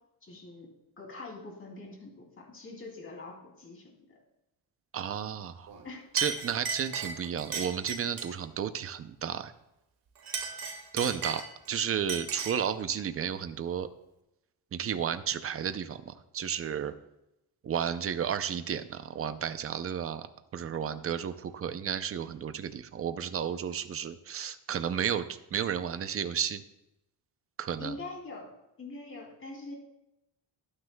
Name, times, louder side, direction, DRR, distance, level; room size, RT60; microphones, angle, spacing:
voice 1, 0.2-0.7 1.0-4.2 5.8-6.0 20.7-21.1 27.8-28.5 28.8-29.7, left 2 dB, 30° left, 0 dB, 2.8 m, -44 dB
voice 2, 4.9-5.7 6.1-9.5 10.9-13.9 14.7-16.9 17.6-20.3 20.5-25.2 25.5-26.6 27.6-27.9, right 8 dB, 30° right, 11 dB, 0.5 m, -32 dB
Chink clink, 5.7-5.9 6.2-8.4 10.2-11.7 12.1-12.7, right 5 dB, 50° right, 1.9 m, -36 dB
19.0 x 9.8 x 2.2 m, 0.89 s
cardioid pair, 170°, 45 cm